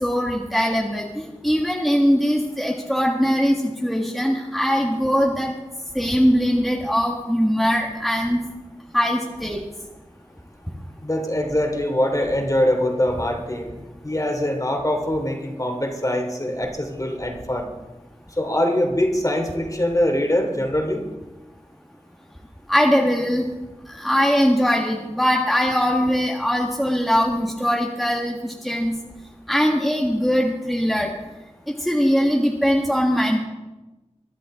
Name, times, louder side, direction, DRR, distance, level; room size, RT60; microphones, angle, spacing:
voice 1, 0.0-5.5 5.9-8.4 8.9-9.6 22.7-23.5 23.9-29.0 29.5-31.1 31.7-33.4, equal, ahead, -1 dB, 1.8 m, -21 dB
voice 2, 11.0-13.8 14.0-17.7 18.4-21.1, left 1 dB, 30° left, 2 dB, 2.8 m, -23 dB
22.5 x 11.5 x 3.8 m, 1.1 s
wide cardioid pair, 55°, 12 cm